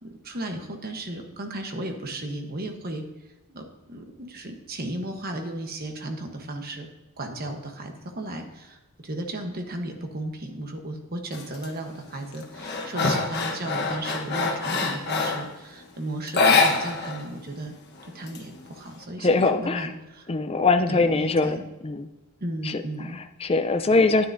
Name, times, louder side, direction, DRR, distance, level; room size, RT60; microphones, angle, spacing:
voice 1, 0.0-3.1 3.5-6.9 7.2-17.7 18.0-20.3 20.9-21.6 22.4-23.2, right 1 dB, 45° right, 4 dB, 1.1 m, -35 dB
sound 1, 11.3-11.7 12.1-15.5 16.3-17.2 17.5-17.6 18.0-18.9, left 4 dB, 50° left, 1.2 m, -24 dB
voice 2, 19.2-19.9 20.3-21.6 21.8-22.1 22.6-22.8 23.1-24.3, left 3 dB, 25° left, 9 dB, 0.5 m, -22 dB
9.9 x 9.4 x 2.7 m, 1.1 s
head